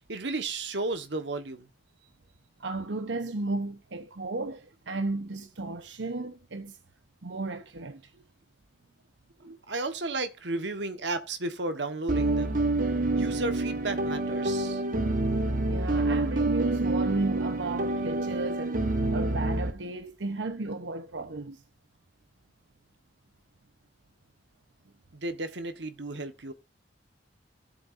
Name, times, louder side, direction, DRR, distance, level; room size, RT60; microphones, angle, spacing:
voice 1, 0.1-1.7 9.4-12.6 13.1-14.8 25.1-26.5, right 2 dB, 70° right, 1.4 m, -33 dB
voice 2, 2.6-6.8 7.2-8.1 15.7-21.6, right 2 dB, 90° right, 1.0 m, -34 dB
sound 1, 12.1-19.7, right 2 dB, 50° right, 1.3 m, -27 dB
16.0 x 7.9 x 2.7 m
head